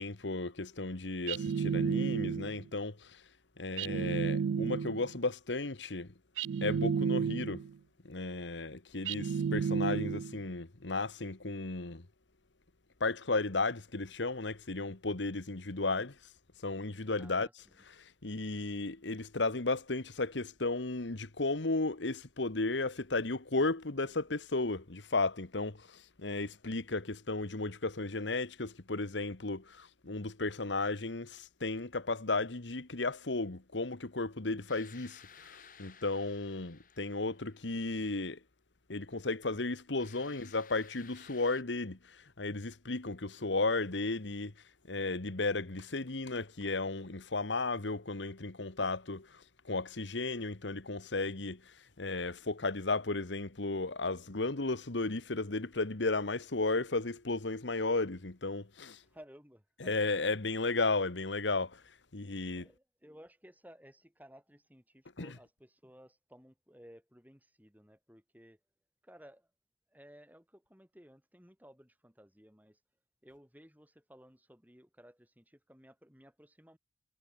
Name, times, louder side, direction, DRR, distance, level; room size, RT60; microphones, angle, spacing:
voice 1, 0.0-3.2 3.6-6.1 6.6-7.6 8.0-12.1 13.0-16.2 16.6-17.5 18.0-38.4 38.9-44.5 44.9-59.0 59.8-61.8 62.1-62.7 65.2-65.3, left 3 dB, 85° left, 1.5 m, -34 dB
sound 1, 1.3-2.6 3.8-5.1 6.4-7.7 9.1-10.4, right 6 dB, 90° right, 0.3 m, -32 dB
voice 2, 17.2-17.8 59.0-60.1 62.5-68.6 69.0-69.5 69.9-72.8 73.2-76.8, equal, 10° right, 5.0 m, -57 dB
sound 2, 34.7-37.9 40.0-41.6, left 7 dB, 50° left, 6.2 m, -57 dB
head